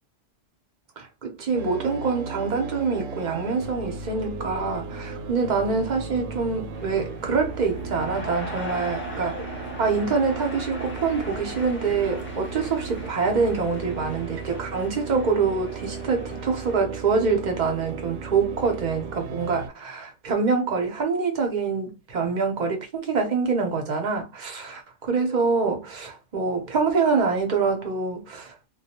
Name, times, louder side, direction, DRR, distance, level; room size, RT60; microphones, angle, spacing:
voice 1, 1.0-28.5, right 4 dB, 45° right, 0.7 m, -25 dB
sound 1, 1.5-19.7, right 4 dB, 85° right, 1.0 m, -36 dB
sound 2, 6.7-16.7, left 1 dB, 20° left, 0.3 m, -40 dB
2.3 x 2.1 x 2.8 m
omnidirectional pair, 1.3 m